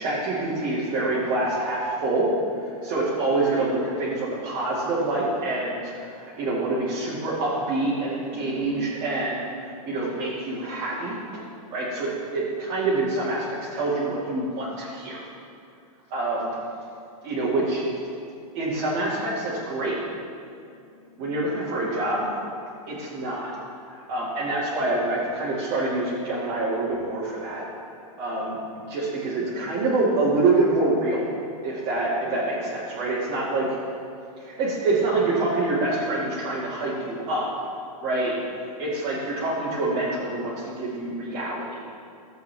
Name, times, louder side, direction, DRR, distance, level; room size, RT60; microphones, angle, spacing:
voice 1, 0.0-2.3 2.6-11.4 11.7-15.2 16.1-16.6 17.2-17.8 18.5-20.0 21.2-22.3 22.9-23.5 23.9-27.6 28.2-28.6 28.9-31.3 31.6-33.6 34.4-37.6 38.0-38.3 38.8-41.8, right 2 dB, 35° right, -9 dB, 2.2 m, -26 dB
14.5 x 8.1 x 3.4 m, 2.5 s
supercardioid pair, 150°, 19 cm